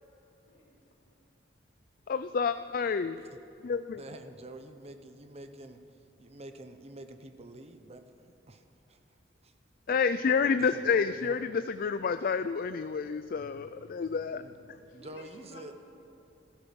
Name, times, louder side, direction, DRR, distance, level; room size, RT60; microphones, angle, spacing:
voice 1, 0.5-0.8 14.9-15.7, left 1 dB, 80° left, -2 dB, 3.1 m, -52 dB
voice 2, 2.1-3.2 3.6-4.0 9.9-14.4, left 5 dB, 50° left, 11 dB, 0.4 m, -29 dB
voice 3, 3.9-5.8 6.2-8.6 8.9-9.0 9.4-9.5 10.6-11.4 14.1-14.2 14.4-14.6 14.9-15.7, right 1 dB, 35° right, 8 dB, 0.9 m, -47 dB
16.5 x 15.0 x 5.3 m, 2.9 s
head